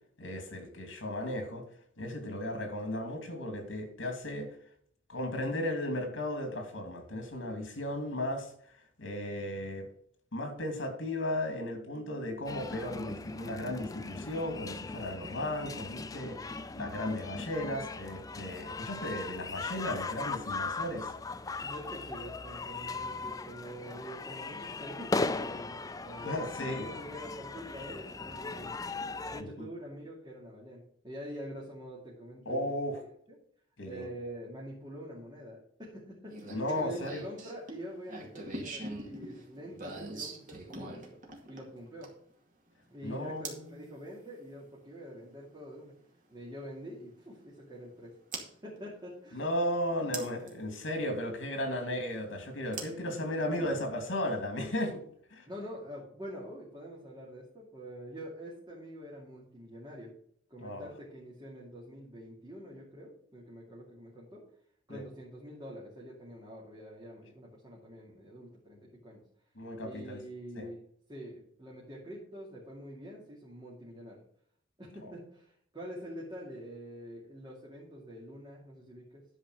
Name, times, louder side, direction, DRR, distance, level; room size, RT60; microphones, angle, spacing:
voice 1, 0.2-1.6 2.0-4.5 5.1-8.5 9.0-9.9 10.3-16.4 16.7-21.1 26.2-26.9 29.4-29.5 32.5-33.0 33.8-34.1 36.5-37.2 43.0-43.8 49.3-55.0 55.3-55.5 60.6-60.9 64.9-65.0 69.6-70.2 70.5-70.7, left 1 dB, 70° left, 5 dB, 2.6 m, -35 dB
sound 1, 12.5-29.4, left 3 dB, 20° left, 0.4 m, -38 dB
voice 2, 21.6-26.4 26.7-29.0 29.3-32.7 33.3-33.4 33.9-41.2 41.5-42.1 42.9-45.9 46.3-48.2 48.6-49.5 51.8-51.9 53.0-53.1 55.5-60.1 60.5-64.5 64.9-69.2 69.8-70.8 71.1-74.2 74.8-79.3, equal, 20° right, -5 dB, 2.6 m, -46 dB
sound 2, 36.3-42.3 43.4-43.7 45.6-45.7 48.3-48.5 50.1-50.5 52.7-53.7, right 2 dB, 45° right, 2.1 m, -42 dB
11.0 x 5.0 x 6.5 m, 0.64 s
head